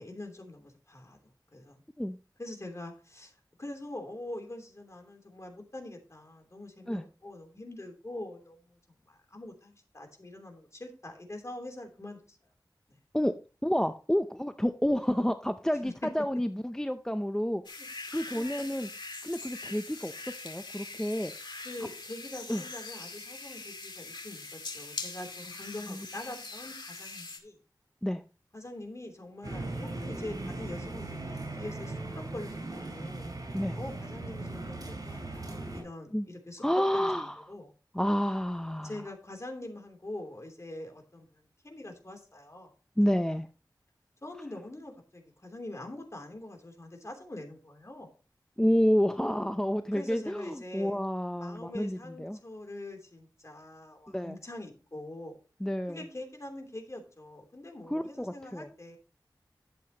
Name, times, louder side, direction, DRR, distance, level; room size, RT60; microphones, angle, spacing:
voice 1, 0.0-1.8 2.4-8.8 9.1-12.4 15.8-16.1 17.8-17.9 18.3-18.4 21.6-27.6 28.5-33.3 33.7-36.7 36.9-37.7 38.8-42.7 44.2-48.1 49.9-51.0 51.3-55.4 55.9-59.0, left 1 dB, 40° left, 3 dB, 3.1 m, -44 dB
voice 2, 13.6-17.6 18.1-18.9 19.2-20.1 20.4-21.3 22.5-22.6 25.9-26.0 28.0-28.2 33.5-33.8 36.1-36.3 36.6-37.5 37.9-39.0 43.0-43.5 48.6-52.4 54.1-54.4 55.6-56.0 57.9-58.7, equal, 10° left, 9 dB, 0.5 m, -29 dB
sound 1, 17.6-27.4, left 3 dB, 85° left, 2.1 m, -42 dB
sound 2, 29.4-35.8, right 2 dB, 50° right, 4.8 m, -38 dB
11.5 x 7.7 x 2.9 m, 0.35 s
wide cardioid pair, 65°, 8 cm